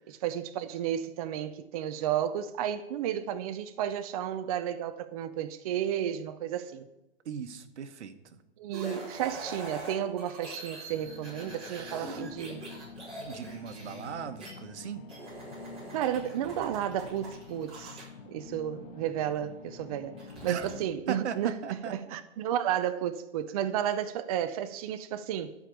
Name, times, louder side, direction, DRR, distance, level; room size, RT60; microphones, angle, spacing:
voice 1, 0.1-6.9 8.6-12.6 15.9-20.2 20.4-25.5, right 10 dB, 35° right, 0.5 m, -32 dB
voice 2, 7.2-8.4 11.6-12.2 13.3-15.0 20.5-20.7 21.1-22.2, right 7 dB, 80° right, 1.3 m, -38 dB
sound 1, 8.7-14.5 15.1-18.0 20.2-20.8, right 2 dB, 15° right, 5.1 m, -43 dB
sound 2, 10.9-20.8, left 5 dB, 55° left, 1.0 m, -48 dB
12.5 x 5.2 x 8.3 m
hypercardioid pair, 160°, 34 cm